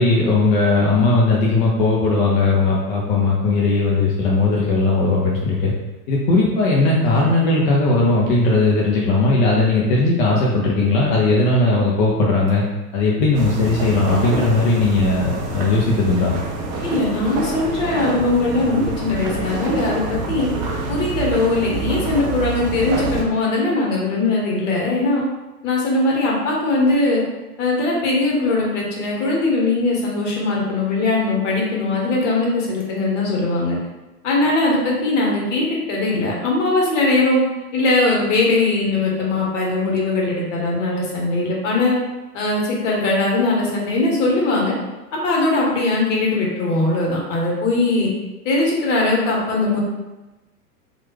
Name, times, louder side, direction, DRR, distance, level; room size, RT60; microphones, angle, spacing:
voice 1, 0.0-5.7 6.1-12.6 12.9-16.4, left 3 dB, 30° left, -4 dB, 0.5 m, -18 dB
sound 1, 13.3-23.2, right 2 dB, 30° right, 0.4 m, -27 dB
voice 2, 16.8-20.5 20.9-25.2 25.6-27.2 27.6-33.8 34.2-37.4 37.7-42.0 42.3-44.7 45.1-48.1 48.4-49.8, left 2 dB, 50° left, -2 dB, 1.1 m, -20 dB
3.0 x 2.4 x 3.2 m, 1.1 s
figure-of-eight pair, 100°, 48 cm